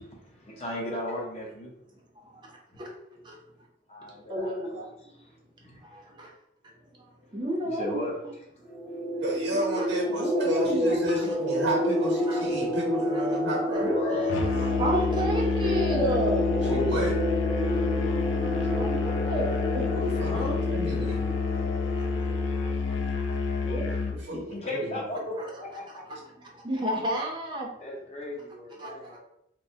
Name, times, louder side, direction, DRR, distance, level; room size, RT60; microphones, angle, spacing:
voice 1, 0.3-1.7 3.9-5.8 7.6-8.1 13.7-14.7 16.5-17.1 20.2-20.6 24.1-26.0 27.8-29.2, left 1 dB, 35° left, -3 dB, 0.8 m, -35 dB
voice 2, 2.2-2.9 3.2-3.4 4.3-5.1 5.8-6.3 7.0-8.0 9.7-11.3 12.3-12.6 13.0-13.2 13.7-13.8 14.8-16.5 17.7-17.8 18.8-20.1 21.0-21.2 21.5-21.6 22.0-22.4 22.8-23.2 23.6-23.9 26.1-26.2 26.4-27.7 28.8-29.2, equal, 25° right, -1 dB, 0.6 m, -32 dB
sound 1, 8.6-23.0, equal, 15° left, 1.2 m, -29 dB
voice 3, 9.2-14.3 16.7-17.1 19.9-21.4 24.2-25.0, right 1 dB, 80° right, -2 dB, 0.8 m, -32 dB
Musical instrument, 14.3-24.2, left 4 dB, 80° left, 0.4 m, -29 dB
3.1 x 2.1 x 2.7 m, 0.79 s
head